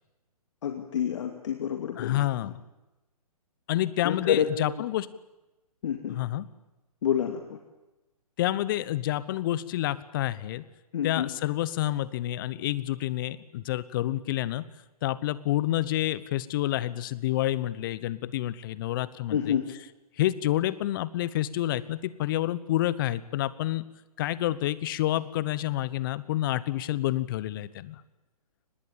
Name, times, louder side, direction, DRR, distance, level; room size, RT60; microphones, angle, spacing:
voice 1, 0.6-2.2 4.0-4.5 5.8-6.2 7.0-7.6 10.9-11.3 19.3-19.6, left 9 dB, 50° left, 5 dB, 2.3 m, -28 dB
voice 2, 2.0-2.6 3.7-5.1 6.1-6.4 8.4-10.6 11.0-14.6 15.0-19.6 20.2-23.8 24.2-28.0, left 14 dB, 35° left, 18 dB, 1.0 m, -28 dB
24.0 x 20.5 x 8.8 m, 1.0 s
hypercardioid pair, 140°, 20 cm